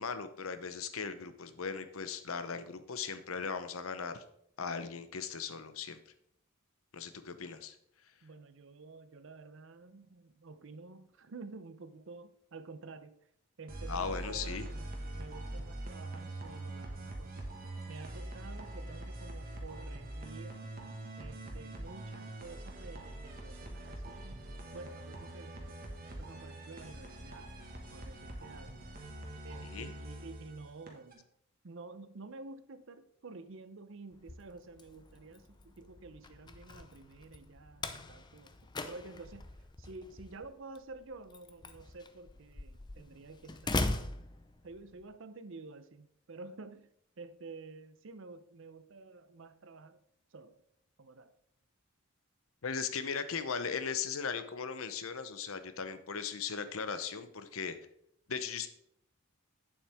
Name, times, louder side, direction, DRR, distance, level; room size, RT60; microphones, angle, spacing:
voice 1, 0.0-4.2 4.6-6.0 6.9-7.7 13.9-14.7 29.7-29.9 52.6-57.8 58.3-58.7, left 6 dB, 70° left, 0.8 m, -38 dB
voice 2, 8.2-13.2 13.6-17.5 17.9-20.6 21.2-27.5 27.9-28.8 29.4-31.3 31.6-38.5 38.8-39.5 39.8-44.1 44.6-46.9 47.2-50.0 50.3-50.6 51.0-51.3, right 3 dB, 60° right, 0.6 m, -50 dB
sound 1, 13.7-31.1, right 1 dB, 40° right, 1.5 m, -44 dB
Slam, 34.1-45.0, left 2 dB, 20° left, 0.5 m, -41 dB
8.8 x 7.2 x 3.5 m
head